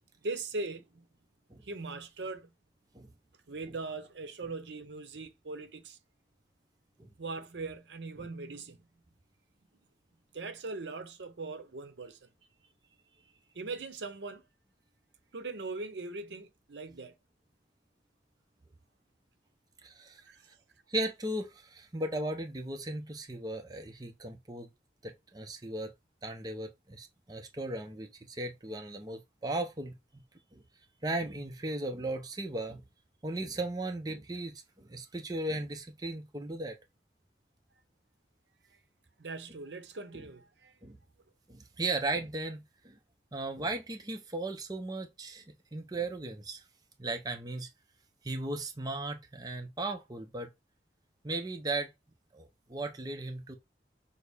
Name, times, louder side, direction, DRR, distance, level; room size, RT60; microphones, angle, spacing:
voice 1, 0.2-1.0 1.6-2.5 3.5-6.0 7.2-8.8 10.3-12.3 13.5-14.4 15.3-17.1 20.2-20.4 39.2-40.8, right 3 dB, 85° right, 0.7 m, -40 dB
voice 2, 19.8-20.2 20.9-24.7 25.0-25.9 26.2-30.0 30.5-30.6 31.0-32.8 33.2-36.8 40.8-41.0 41.5-43.0 43.3-45.4 45.7-46.6 47.0-47.7 48.2-50.5 51.2-51.9 52.3-53.6, right 2 dB, 20° right, 0.6 m, -36 dB
6.2 x 2.1 x 3.4 m
head